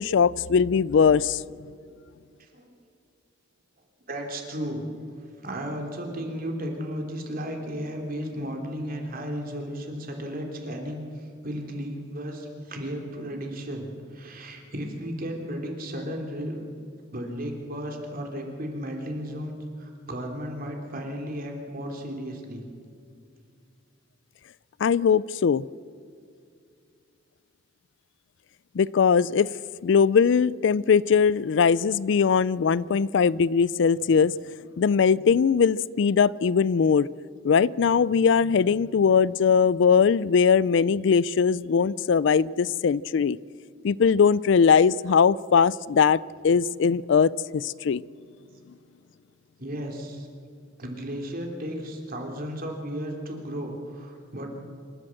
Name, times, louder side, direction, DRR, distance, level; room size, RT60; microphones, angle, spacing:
voice 1, 0.0-1.4 24.8-25.6 28.7-29.5 29.8-34.3 34.8-37.1 37.4-43.4 43.8-48.0, left 6 dB, 65° left, 21 dB, 0.4 m, -20 dB
voice 2, 4.1-4.8 5.4-16.7 17.1-22.6 49.6-50.3 50.8-54.5, equal, 50° right, 2 dB, 3.2 m, -34 dB
26.5 x 13.0 x 7.7 m, 2.5 s
head